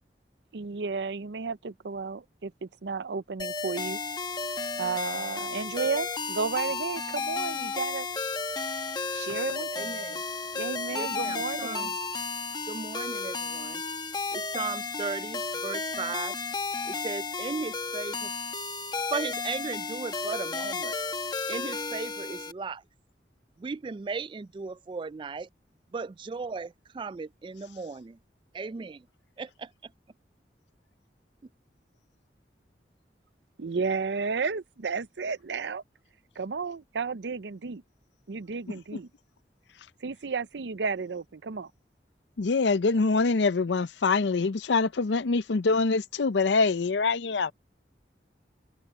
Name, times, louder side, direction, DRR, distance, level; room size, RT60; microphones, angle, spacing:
voice 1, 0.5-4.0 4.8-8.1 9.1-9.9 10.5-12.0 33.6-35.8 36.4-37.8 38.3-39.1 40.0-41.7, right 5 dB, 80° right, 0.6 m, -33 dB
sound 1, 3.4-22.5, left 4 dB, 25° left, 1.0 m, -33 dB
voice 2, 9.8-10.2 10.9-11.9 12.6-13.8 14.3-16.4 16.8-18.3 19.1-21.0 21.5-22.8 23.6-25.5 25.9-26.7 26.9-28.2 28.5-29.0 29.4-29.9, right 4 dB, 30° right, 0.3 m, -36 dB
voice 3, 42.4-47.5, left 4 dB, 90° left, 0.6 m, -24 dB
open air
head